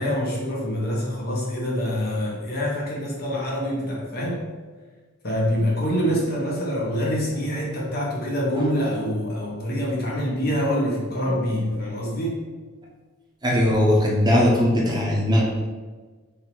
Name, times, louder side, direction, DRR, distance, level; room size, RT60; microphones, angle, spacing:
voice 1, 0.0-4.4 5.2-12.4, equal, 50° left, -4 dB, 1.2 m, -25 dB
voice 2, 13.4-15.4, left 1 dB, 20° right, -3 dB, 0.7 m, -19 dB
3.8 x 2.8 x 4.5 m, 1.4 s
head